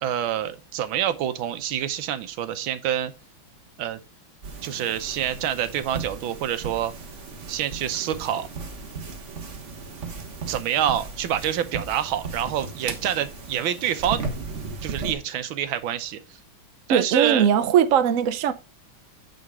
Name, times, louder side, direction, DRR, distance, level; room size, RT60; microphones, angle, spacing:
voice 1, 0.0-3.1 3.8-4.0 4.6-6.9 7.5-8.5 10.5-14.2 14.8-16.2 16.9-17.5, right 10 dB, 80° right, 1.6 m, -26 dB
sound 1, 4.4-15.2, right 4 dB, 40° right, 1.5 m, -36 dB
voice 2, 16.9-18.5, right 8 dB, 65° right, 0.8 m, -20 dB
9.0 x 4.0 x 4.7 m
omnidirectional pair, 2.2 m